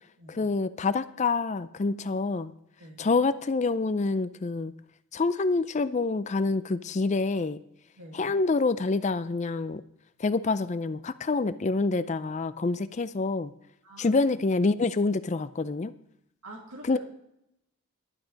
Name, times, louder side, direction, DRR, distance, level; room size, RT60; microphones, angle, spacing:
voice 1, 0.3-2.5 3.0-4.7 5.1-7.6 8.1-9.8 10.2-13.5 14.0-15.9 16.8-17.0, left 3 dB, 30° left, 14 dB, 0.4 m, -27 dB
voice 2, 8.0-8.3 13.8-14.2 16.4-17.0, right 1 dB, 85° right, -1 dB, 2.2 m, -46 dB
11.5 x 8.9 x 5.1 m, 0.80 s
head